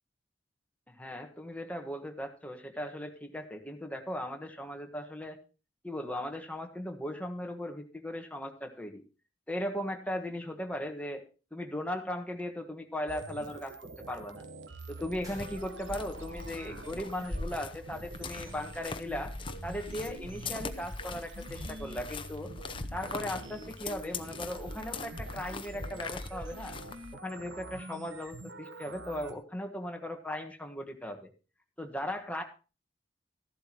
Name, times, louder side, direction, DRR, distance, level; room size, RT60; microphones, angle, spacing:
voice 1, 0.9-5.4 5.8-9.0 9.5-11.2 11.5-13.7 14.1-14.4 14.9-19.3 19.6-22.5 22.9-26.7 27.2-31.3 31.8-32.4, left 1 dB, 10° left, 4 dB, 1.4 m, -38 dB
sound 1, 13.1-29.3, right 2 dB, 85° right, 1.3 m, -46 dB
sound 2, 14.9-16.6 16.8-20.8, left 1 dB, 20° right, 5.0 m, -45 dB
sound 3, 15.3-27.1, left 4 dB, 30° left, 0.7 m, -42 dB
14.0 x 11.5 x 2.9 m, 0.32 s
head